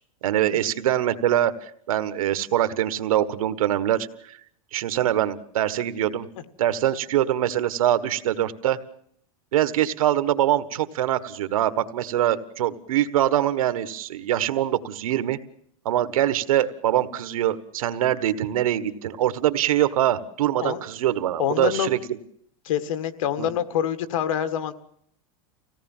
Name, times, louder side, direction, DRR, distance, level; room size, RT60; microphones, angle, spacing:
voice 1, 0.2-4.1 4.7-6.3 6.6-8.8 9.5-15.4 15.8-22.2 23.4-23.5, right 12 dB, 90° right, 12 dB, 1.5 m, -23 dB
voice 2, 21.4-21.9 22.7-24.7, left 10 dB, 70° left, 10 dB, 1.8 m, -26 dB
25.5 x 17.5 x 7.4 m, 0.69 s
supercardioid pair, 165°, 17 cm